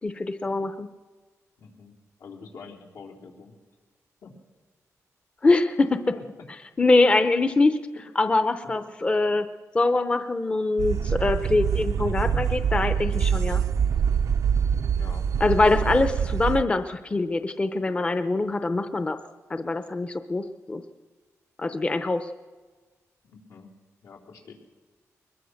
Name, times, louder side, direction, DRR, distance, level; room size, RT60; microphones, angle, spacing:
voice 1, 0.0-0.9 5.4-6.0 6.8-7.8 8.2-9.5 9.7-13.6 15.4-19.2 19.5-20.8 21.6-22.3, left 2 dB, 20° left, 9 dB, 0.6 m, -23 dB
voice 2, 1.6-3.6 4.2-4.3 6.1-6.2 14.9-15.3 23.2-23.7 24.0-24.5, left 5 dB, 90° left, -2 dB, 3.8 m, -46 dB
sound 1, 10.8-16.6, right 7 dB, 85° right, 0.7 m, -25 dB
22.0 x 21.0 x 6.5 m, 1.4 s
wide cardioid pair, 165°, 6 cm